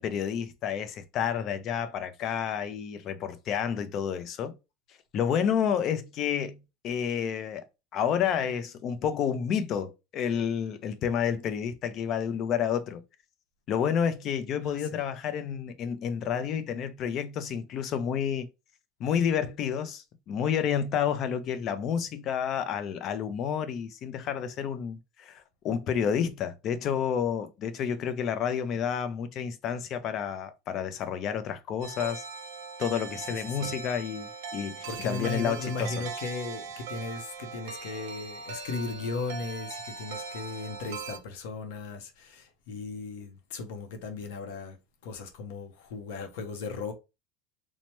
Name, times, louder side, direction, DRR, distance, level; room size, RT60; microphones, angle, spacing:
voice 1, 0.0-4.6 5.1-7.6 7.9-13.0 13.7-18.5 19.0-32.2 32.8-36.1, left 8 dB, 40° left, 0.4 m, -30 dB
sound 1, 31.8-41.2, right 5 dB, 85° right, 0.6 m, -40 dB
voice 2, 34.8-44.8 45.0-46.9, left 3 dB, 80° left, 0.7 m, -36 dB
3.2 x 2.1 x 2.9 m
supercardioid pair, 135°, 0 cm